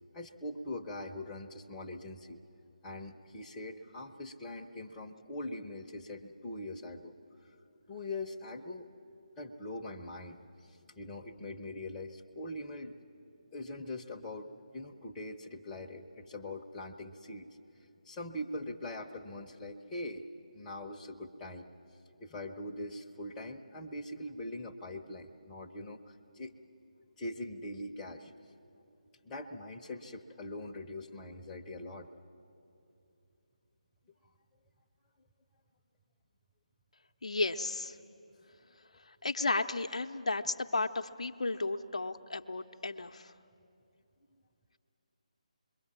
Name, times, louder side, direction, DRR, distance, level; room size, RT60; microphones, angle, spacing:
voice 1, 0.1-2.4 2.8-7.1 7.9-8.9 9.4-10.4 11.0-13.0 13.5-17.5 18.1-20.3 20.5-21.7 22.2-26.6 27.2-28.3 29.2-32.1, left 1 dB, 10° left, -1 dB, 0.8 m, -42 dB
voice 2, 37.2-38.0 39.1-43.3, left 3 dB, 60° left, 6 dB, 0.7 m, -34 dB
27.0 x 22.5 x 7.5 m, 2.8 s
figure-of-eight pair, 150°, 4 cm